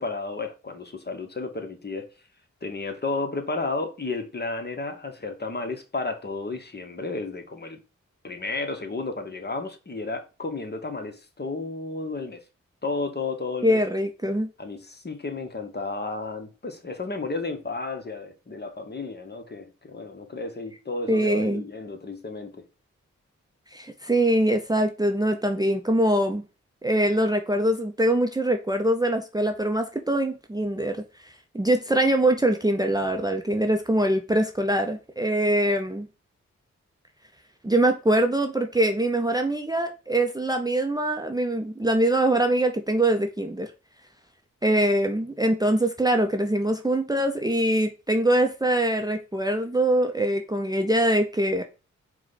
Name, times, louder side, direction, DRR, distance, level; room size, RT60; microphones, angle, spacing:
voice 1, 0.0-2.1 2.6-7.8 8.2-12.4 12.8-13.8 14.6-22.6, left 3 dB, 30° left, 1.1 m, -32 dB
voice 2, 13.6-14.5 21.1-21.6 23.7-26.4 26.8-36.1 37.6-43.7 44.6-51.6, right 1 dB, 10° right, 0.7 m, -23 dB
4.7 x 2.3 x 4.0 m
supercardioid pair, 45°, 31 cm